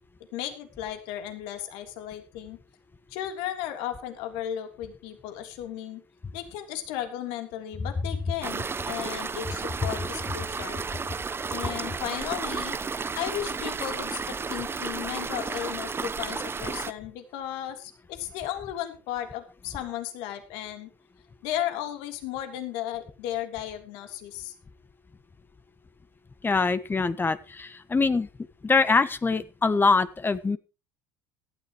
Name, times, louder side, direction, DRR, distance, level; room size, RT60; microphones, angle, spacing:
voice 1, 0.3-2.6 3.1-6.0 6.3-10.8 11.5-12.8 13.2-20.9 21.4-24.5, left 11 dB, 75° left, 7 dB, 3.3 m, -35 dB
sound 1, 8.4-16.9, right 5 dB, 25° right, 1.1 m, -32 dB
voice 2, 26.4-28.3 28.6-30.6, left 4 dB, 20° left, 13 dB, 1.5 m, -24 dB
18.0 x 13.0 x 3.1 m, 0.31 s
hypercardioid pair, 80°, 9 cm